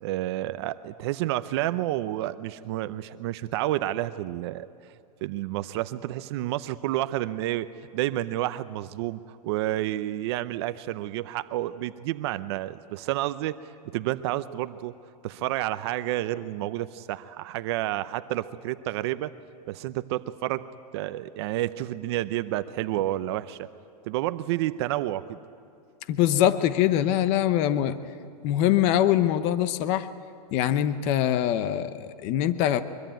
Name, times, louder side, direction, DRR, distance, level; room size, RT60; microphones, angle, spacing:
voice 1, 0.0-4.7 5.2-7.7 7.9-13.6 13.9-14.9 15.2-19.3 19.7-20.6 20.9-23.7 24.0-25.4, right 15 dB, 40° right, 12 dB, 0.6 m, -30 dB
voice 2, 26.1-28.0 28.4-30.1 30.5-32.8, left 11 dB, 30° left, 12 dB, 0.8 m, -23 dB
24.0 x 23.5 x 9.1 m, 2.5 s
supercardioid pair, 160°, 21 cm